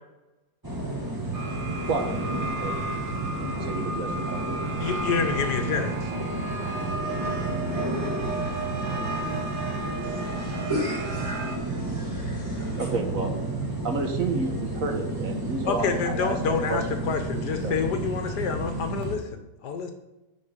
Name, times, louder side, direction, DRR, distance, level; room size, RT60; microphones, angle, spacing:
sound 1, 0.6-19.2, right 2 dB, 15° right, 1.4 m, -31 dB
sound 2, 1.3-11.6, right 2 dB, 75° right, 1.8 m, -34 dB
voice 1, 1.9-2.3 2.6-4.4 12.8-13.4 13.8-16.8 17.3-17.7, right 3 dB, 55° right, 4 dB, 1.5 m, -31 dB
voice 2, 4.8-6.1 15.7-19.9, left 6 dB, 75° left, 6 dB, 1.5 m, -28 dB
voice 3, 8.2-9.6 10.0-12.9, equal, 45° left, -2 dB, 3.3 m, -37 dB
11.0 x 4.5 x 6.7 m, 1.0 s
omnidirectional pair, 1.8 m